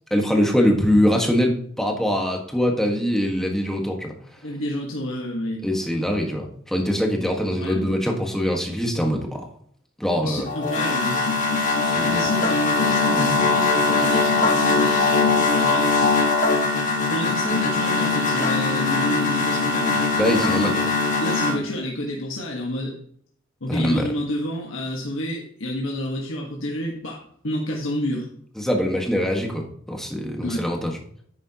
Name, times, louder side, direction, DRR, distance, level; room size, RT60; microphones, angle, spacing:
voice 1, 0.1-4.1 5.6-9.4 10.0-10.4 11.8-12.2 20.2-20.8 23.7-24.1 28.6-30.9, equal, ahead, 1 dB, 1.5 m, -23 dB
voice 2, 4.4-5.6 7.6-7.9 10.2-11.2 12.1-15.2 15.5-16.4 17.1-19.9 20.4-20.8 21.2-23.0 23.6-28.3 30.4-30.7, left 1 dB, 70° left, -1 dB, 1.5 m, -29 dB
sound 1, 10.5-21.6, left 3 dB, 35° left, 1.7 m, -21 dB
10.5 x 8.7 x 2.9 m, 0.64 s
head